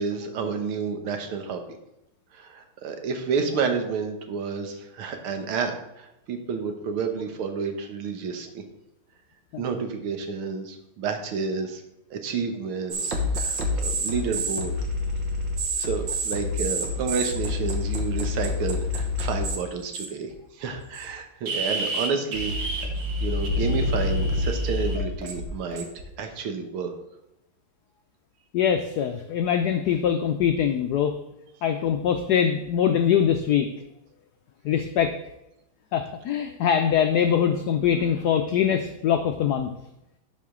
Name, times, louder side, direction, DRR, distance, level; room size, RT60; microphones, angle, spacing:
voice 1, 0.0-1.6 2.3-8.6 9.6-11.8 12.1-14.7 15.8-22.9 23.2-25.9 26.2-26.9, right 5 dB, 80° right, 6 dB, 1.8 m, -30 dB
sound 1, 12.9-19.6 19.9-20.3 20.9-21.1 21.5-26.0, left 1 dB, 60° right, 1.8 m, -27 dB
voice 2, 28.5-31.1 31.6-33.7 34.6-35.1 35.9-39.7, left 8 dB, 85° left, 6 dB, 0.8 m, -23 dB
11.5 x 5.0 x 3.7 m, 0.88 s
omnidirectional pair, 2.3 m